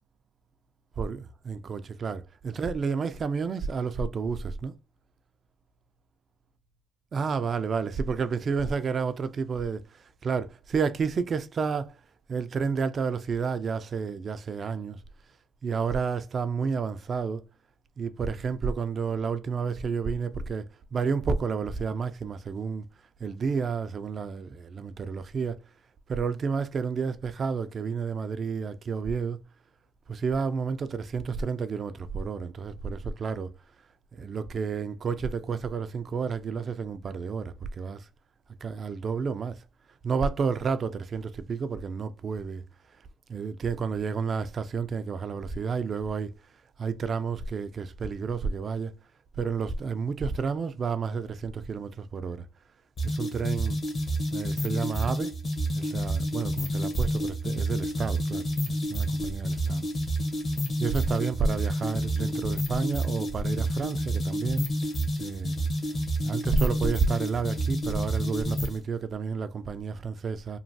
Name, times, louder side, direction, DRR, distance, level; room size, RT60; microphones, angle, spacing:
voice 1, 1.0-4.7 7.1-12.0 12.3-15.0 15.6-17.4 18.0-22.9 23.2-25.6 26.1-29.4 30.1-33.5 34.1-38.1 38.6-39.6 40.0-42.6 43.3-46.3 46.8-48.9 49.4-52.5 53.0-53.8 54.3-55.3 55.7-59.9 60.8-64.7 65.2-65.6 66.2-70.6, right 5 dB, 50° right, 0.4 m, -30 dB
sound 1, 53.0-68.8, right 1 dB, 50° left, 1.0 m, -29 dB
3.0 x 2.2 x 2.6 m
cardioid pair, 90°, 0 cm